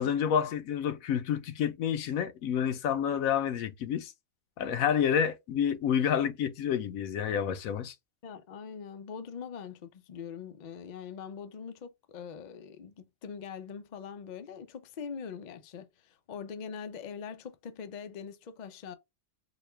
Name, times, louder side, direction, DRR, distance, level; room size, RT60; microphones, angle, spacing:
voice 1, 0.0-4.1 4.6-7.9, left 8 dB, 80° left, 1.0 m, -29 dB
voice 2, 8.2-18.9, left 6 dB, 65° left, 0.4 m, -43 dB
4.1 x 2.3 x 3.2 m
omnidirectional pair, 1.4 m